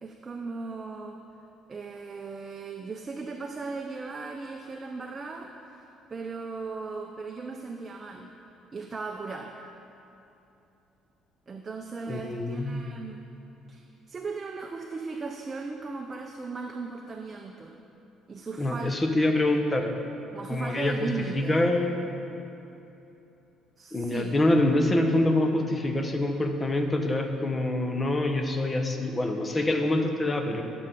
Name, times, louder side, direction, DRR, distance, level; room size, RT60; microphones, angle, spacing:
voice 1, 0.0-1.2 1.7-8.3 8.7-9.6 11.5-13.2 13.7-17.8 18.3-19.0 20.3-21.6 23.8-24.4, right 4 dB, 30° right, 3 dB, 0.5 m, -37 dB
voice 2, 12.1-12.8 18.6-19.9 20.5-22.1 23.9-30.6, left 1 dB, 25° left, 5 dB, 0.8 m, -25 dB
11.5 x 6.7 x 3.7 m, 2.9 s
cardioid pair, 110°, 0 cm